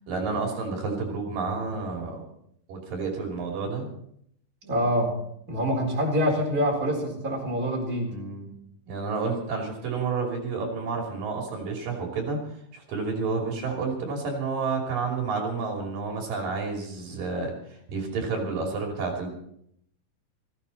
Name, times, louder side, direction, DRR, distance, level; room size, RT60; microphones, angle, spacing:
voice 1, 0.1-2.3 2.7-3.9 8.1-8.5 8.9-12.4 12.7-19.3, right 4 dB, 70° right, 0 dB, 4.5 m, -30 dB
voice 2, 4.6-5.1 5.5-8.1 18.0-18.2, equal, 25° right, -2 dB, 4.4 m, -26 dB
19.0 x 15.5 x 4.2 m, 0.70 s
omnidirectional pair, 4.1 m